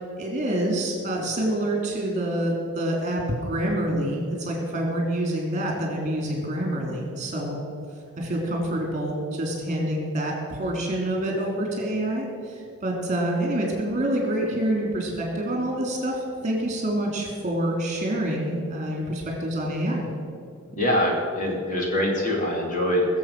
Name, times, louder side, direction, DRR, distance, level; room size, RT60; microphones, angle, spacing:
voice 1, 0.2-7.6 8.2-20.1, right 1 dB, 35° right, 0 dB, 3.3 m, -27 dB
voice 2, 20.7-23.1, left 1 dB, 35° left, -1 dB, 2.8 m, -24 dB
22.0 x 7.4 x 6.2 m, 2.3 s
head